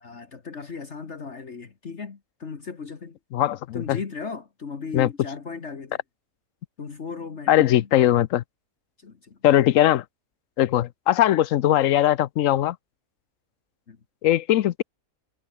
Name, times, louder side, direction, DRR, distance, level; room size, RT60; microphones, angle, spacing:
voice 1, 0.0-3.2 3.7-6.0 6.8-7.9 9.0-9.4 10.6-10.8 13.9-14.0, left 5 dB, 55° left, 1.9 m, -36 dB
voice 2, 3.3-4.0 4.9-5.1 7.5-8.4 9.4-10.0 10.6-12.8 14.2-14.8, left 12 dB, 70° left, 1.0 m, -20 dB
omnidirectional pair, 1.5 m